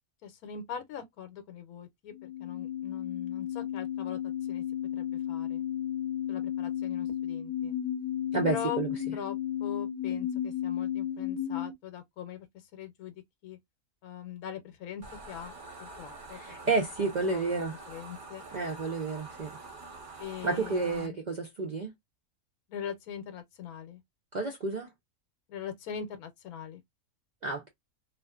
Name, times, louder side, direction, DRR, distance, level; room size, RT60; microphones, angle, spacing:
voice 1, 0.2-4.2 4.5-4.6 4.9-5.6 6.3-7.7 8.5-8.8 9.1-13.6 14.0-16.5 17.3-18.4 20.2-21.2 22.7-24.0 25.5-26.8, left 8 dB, 85° left, 1.1 m, -41 dB
sound 1, 2.1-11.7, left 10 dB, 45° left, 0.7 m, -33 dB
voice 2, 8.3-8.9 16.3-17.8 18.5-19.6 20.4-21.9 24.3-24.9 27.4-27.7, right 3 dB, 75° right, 0.4 m, -30 dB
sound 2, 15.0-21.1, right 3 dB, 45° right, 0.7 m, -46 dB
2.5 x 2.4 x 2.2 m
omnidirectional pair, 1.5 m